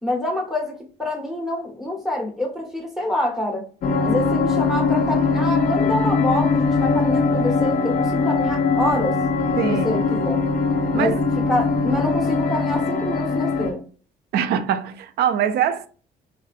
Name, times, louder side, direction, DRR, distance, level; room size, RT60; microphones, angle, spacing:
voice 1, 0.0-3.6 4.0-9.2 9.6-10.4 10.9-11.2 11.5-13.9, left 1 dB, ahead, 1.2 m, -26 dB
sound 1, 3.8-13.7, left 4 dB, 55° left, 0.6 m, -21 dB
voice 2, 9.6-9.9 10.9-11.2 14.3-15.9, right 9 dB, 70° right, 0.4 m, -23 dB
3.2 x 2.6 x 2.4 m
cardioid pair, 110°, 17 cm